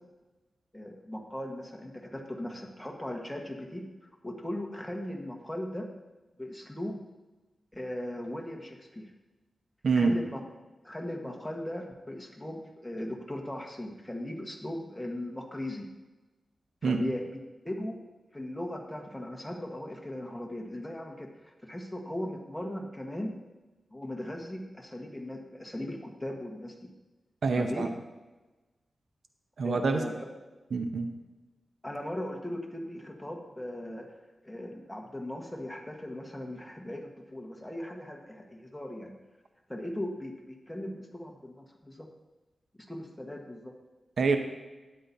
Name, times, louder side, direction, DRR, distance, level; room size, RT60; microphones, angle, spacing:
voice 1, 0.7-3.8 4.2-5.9 6.4-6.9 7.7-9.1 10.0-10.4 10.8-15.9 16.8-17.2 17.6-18.0 18.3-23.3 23.9-26.8 27.6-27.8 29.6-30.1 31.8-34.1 34.4-39.1 39.7-42.1 42.9-43.7, left 1 dB, 10° left, 1 dB, 1.4 m, -38 dB
voice 2, 9.8-10.2 16.8-17.1 27.4-27.9 29.6-30.0 30.7-31.1 44.2-44.4, right 4 dB, 70° right, 6 dB, 0.8 m, -26 dB
12.5 x 9.7 x 2.8 m, 1.2 s
wide cardioid pair, 95°, 0 cm